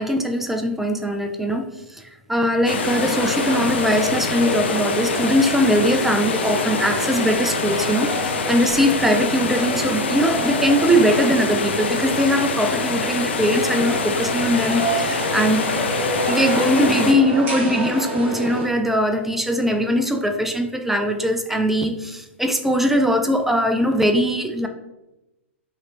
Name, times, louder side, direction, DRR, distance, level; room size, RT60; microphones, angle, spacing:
voice 1, 0.0-15.6 16.3-24.7, equal, 5° right, 6 dB, 0.3 m, -21 dB
sound 1, 2.7-17.1, left 5 dB, 65° left, 0.4 m, -26 dB
sound 2, 2.7-18.7, right 1 dB, 25° right, 1.4 m, -27 dB
5.8 x 2.8 x 2.6 m, 0.96 s
figure-of-eight pair, 105°, 7 cm